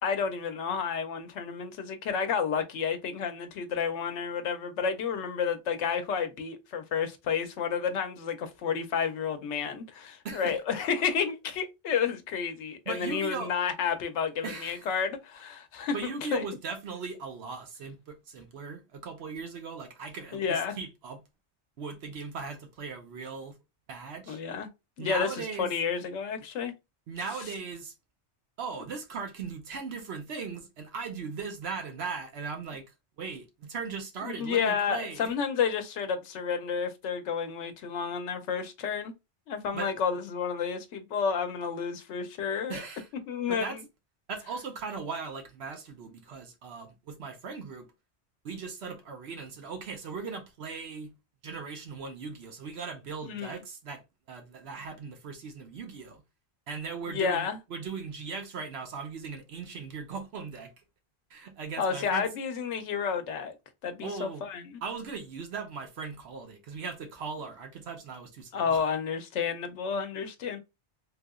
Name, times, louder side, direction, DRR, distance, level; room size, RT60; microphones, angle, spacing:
voice 1, 0.0-16.0 16.3-16.4 20.3-20.7 24.3-24.7 25.0-26.7 34.2-39.1 39.5-42.8 43.3-43.8 53.2-53.6 57.1-57.6 61.8-63.6 63.8-64.6 68.5-70.6, left 6 dB, 80° left, 0.9 m, -31 dB
voice 2, 12.9-13.5 14.4-14.9 15.8-21.2 21.8-23.5 23.9-24.4 25.0-25.7 27.1-27.9 28.6-32.9 33.2-35.3 39.7-39.9 42.7-43.1 43.5-43.8 44.3-47.9 48.4-51.1 51.4-54.0 54.3-56.2 56.7-60.7 61.3-62.3 64.0-64.4 64.8-68.9, right 5 dB, 65° right, 0.9 m, -38 dB
3.3 x 2.7 x 2.4 m
omnidirectional pair, 1.2 m